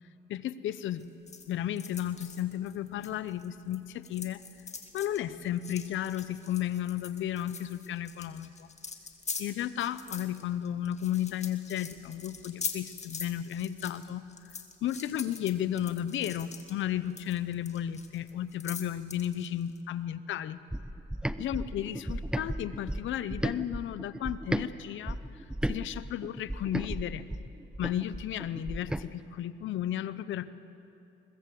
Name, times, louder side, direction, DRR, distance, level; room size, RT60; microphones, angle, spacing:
voice 1, 0.3-1.1 1.5-4.4 4.9-8.7 9.4-14.2 14.8-20.6 21.4-25.2 25.6-27.3 27.8-30.5, left 11 dB, 75° left, 15 dB, 0.9 m, -33 dB
sound 1, 1.0-3.8 4.0-19.8, left 5 dB, 35° left, 2.1 m, -43 dB
sound 2, 20.7-24.7 25.1-29.1, right 1 dB, 5° right, 0.7 m, -35 dB
22.0 x 20.5 x 7.8 m, 2.7 s
cardioid pair, 90°, 20 cm